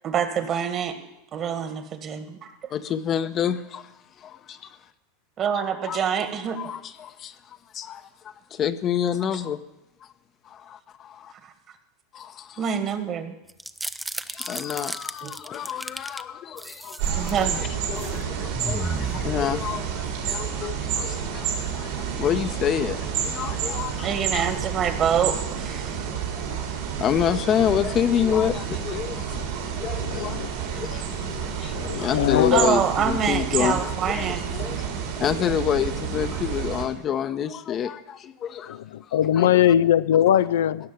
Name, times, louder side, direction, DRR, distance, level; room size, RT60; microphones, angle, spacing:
voice 1, 0.0-1.0 1.3-2.5 5.4-6.7 11.3-11.5 12.6-13.3 15.2-15.3 17.2-17.6 24.0-26.1 32.5-34.5, right 8 dB, 40° right, 1.8 m, -26 dB
voice 2, 2.7-3.9 4.2-4.8 5.8-6.1 6.5-9.6 10.4-11.3 12.1-12.7 14.3-21.5 21.7-24.5 26.1-26.2 27.0-29.4 29.8-34.9 35.2-39.5, left 9 dB, 40° left, 0.9 m, -28 dB
sound 1, 13.5-16.2 16.6-17.4 17.8-18.2 18.5-20.1, right 2 dB, 5° right, 0.6 m, -34 dB
sound 2, 17.0-36.8, right 7 dB, 70° right, 3.8 m, -30 dB
voice 3, 30.0-30.5 31.3-31.4 31.7-32.7 38.7-40.9, left 10 dB, 80° left, 0.4 m, -21 dB
17.0 x 6.5 x 9.5 m
hypercardioid pair, 105°, 0 cm